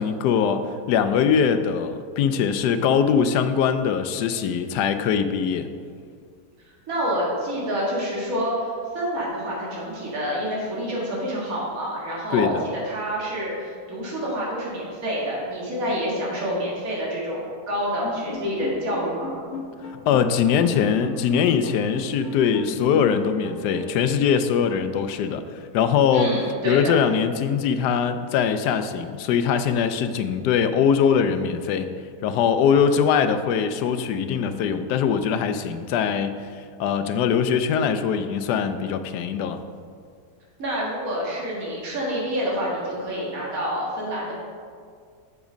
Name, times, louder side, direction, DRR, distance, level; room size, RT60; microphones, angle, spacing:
voice 1, 0.0-5.7 12.3-12.6 20.1-26.3 26.6-31.9 32.2-39.6, left 7 dB, 90° left, 10 dB, 1.2 m, -22 dB
voice 2, 6.9-19.4 26.1-27.0 40.6-44.3, equal, 60° right, -5 dB, 2.3 m, -28 dB
sound 1, 18.0-24.1, left 5 dB, 60° left, 1.4 m, -36 dB
7.2 x 7.0 x 5.1 m, 2.2 s
omnidirectional pair, 1.7 m